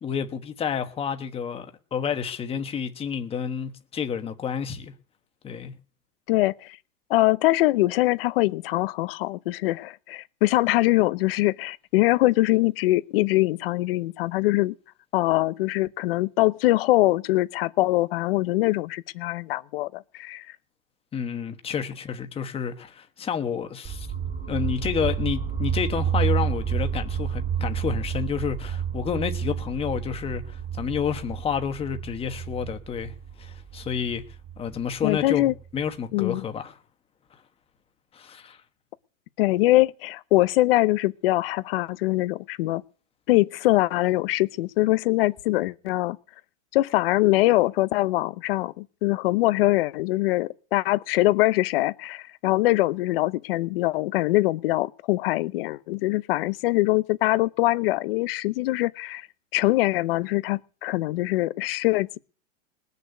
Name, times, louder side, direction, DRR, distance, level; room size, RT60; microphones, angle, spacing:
voice 1, 0.0-4.9 5.4-5.7 21.1-24.1 24.5-34.2 34.6-36.7 38.1-38.6, left 7 dB, 15° left, 1.2 m, -30 dB
voice 2, 6.3-6.8 7.1-14.7 15.1-20.5 35.0-35.5 36.1-36.4 39.4-42.8 43.3-46.2 46.7-59.3 59.5-62.2, left 18 dB, 45° left, 0.8 m, -23 dB
sound 1, 23.8-35.8, right 8 dB, 20° right, 2.2 m, -30 dB
20.0 x 6.8 x 8.2 m
hypercardioid pair, 150°, 39 cm